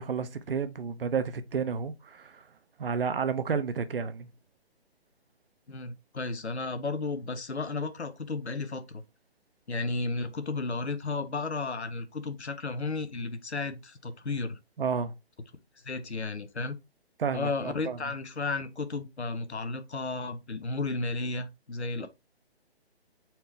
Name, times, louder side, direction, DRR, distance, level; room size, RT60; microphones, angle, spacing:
voice 1, 0.0-2.4 2.8-4.3 14.8-15.1 17.2-18.0 22.0-22.1, right 6 dB, 60° right, 0.7 m, -31 dB
voice 2, 5.7-9.0 9.7-14.6 15.8-16.8 17.3-22.1, left 3 dB, 90° left, 0.8 m, -33 dB
4.3 x 2.8 x 3.3 m
figure-of-eight pair, 140°, 32 cm